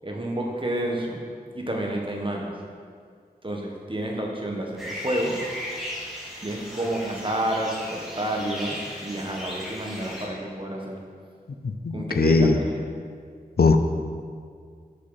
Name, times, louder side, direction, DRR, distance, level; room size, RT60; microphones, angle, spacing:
voice 1, 0.0-1.2 1.5-2.5 3.4-5.3 6.4-8.8 9.0-11.0 11.9-12.8, right 1 dB, 35° right, -1 dB, 1.5 m, -29 dB
sound 1, 4.8-10.3, equal, ahead, 2.2 m, -36 dB
voice 2, 11.6-12.6 13.6-13.8, left 3 dB, 80° left, 7 dB, 0.6 m, -19 dB
7.5 x 6.5 x 5.7 m, 2.1 s
wide cardioid pair, 55°, 16 cm